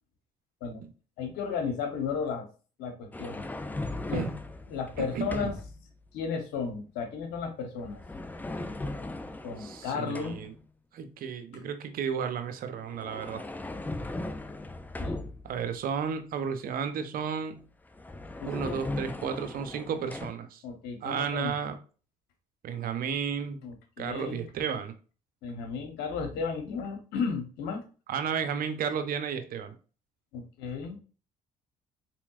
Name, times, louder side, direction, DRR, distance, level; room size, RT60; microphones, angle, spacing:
voice 1, 1.2-2.5 2.8-3.5 4.0-4.2 4.7-5.6 6.1-8.0 9.4-10.4 15.0-15.2 18.4-18.8 20.6-21.5 23.6-24.4 25.4-27.8 30.3-31.0, left 5 dB, 80° left, 5 dB, 0.9 m, -34 dB
sound 1, 3.1-5.8 7.8-10.6 12.7-15.7 17.6-17.7 17.9-20.3, left 2 dB, 10° left, 0.4 m, -38 dB
voice 2, 5.0-5.5 9.6-10.5 10.9-13.4 15.4-17.6 18.4-20.6 21.0-21.8 22.6-23.6 24.0-24.9 28.1-29.7, right 7 dB, 60° right, 8 dB, 0.7 m, -33 dB
4.2 x 3.0 x 2.4 m, 0.36 s
supercardioid pair, 65°, 17 cm